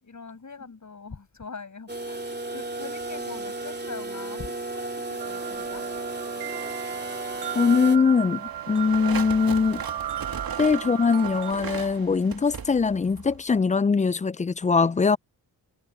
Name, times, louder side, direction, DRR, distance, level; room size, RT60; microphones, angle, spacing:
voice 1, 0.0-5.8 10.8-11.0, left 4 dB, 45° left, 5.7 m, -42 dB
sound 1, 1.9-8.0, right 2 dB, 25° right, 2.9 m, -34 dB
sound 2, 5.2-11.5, right 11 dB, 75° right, 0.8 m, -35 dB
sound 3, 6.8-13.6, right 6 dB, 55° right, 2.1 m, -39 dB
voice 2, 7.5-9.8 10.6-15.2, left 5 dB, 20° left, 0.3 m, -22 dB
cardioid pair, 65°, 41 cm